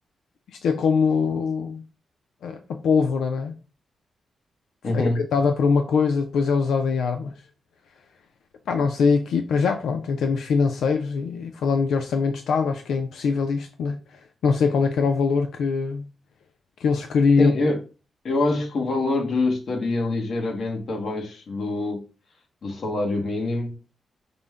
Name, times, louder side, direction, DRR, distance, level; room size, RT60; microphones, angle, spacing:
voice 1, 0.5-1.8 2.4-3.6 4.9-7.4 8.7-16.0 16.8-17.5, left 5 dB, 90° left, 0.4 m, -22 dB
voice 2, 4.8-5.2 17.4-17.8 18.2-22.0 22.6-23.8, left 2 dB, 55° left, 1.1 m, -25 dB
5.1 x 2.1 x 3.4 m
wide cardioid pair, 130°, 0 cm